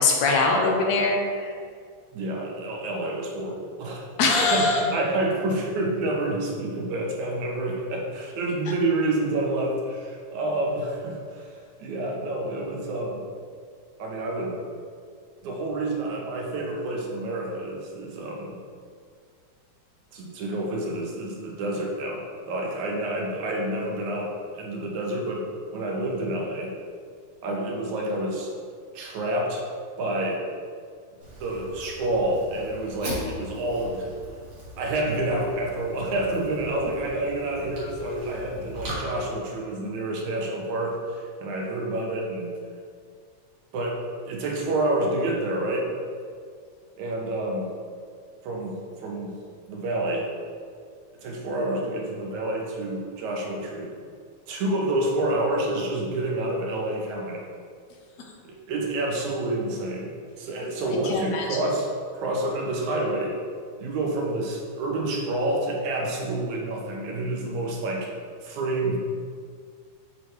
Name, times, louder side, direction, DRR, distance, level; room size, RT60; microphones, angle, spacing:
voice 1, 0.0-1.5 4.2-4.8 61.1-61.5, left 3 dB, 75° left, 0 dB, 1.9 m, -22 dB
voice 2, 2.1-4.1 4.5-11.5 11.8-13.2 14.0-14.6 15.4-18.6 20.1-25.5 25.7-26.7 27.4-28.5 28.9-29.7 30.0-30.4 31.4-34.1 34.8-42.5 43.7-45.9 47.0-47.7 48.4-49.4 49.7-50.3 51.2-53.9 54.5-57.5 58.4-60.1 60.4-63.4 63.8-68.1 68.4-69.0, right 1 dB, 85° right, -1 dB, 2.4 m, -28 dB
Fire, 31.2-38.9, equal, 50° right, 2.6 m, -40 dB
9.9 x 4.5 x 3.4 m, 2.1 s
omnidirectional pair, 3.3 m